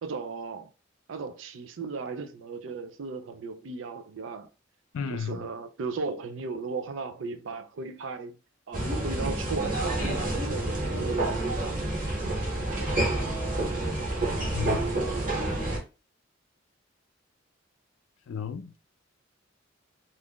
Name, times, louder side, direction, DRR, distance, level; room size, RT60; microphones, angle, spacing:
voice 1, 0.0-0.7 1.1-4.5 5.1-8.4 8.7-11.6, right 4 dB, 70° right, 0.4 m, -36 dB
voice 2, 4.9-5.5 14.5-14.8 18.3-18.8, left 6 dB, 90° left, 0.4 m, -33 dB
sound 1, 8.7-15.8, right 1 dB, 45° right, 1.0 m, -28 dB
2.5 x 2.3 x 3.5 m
head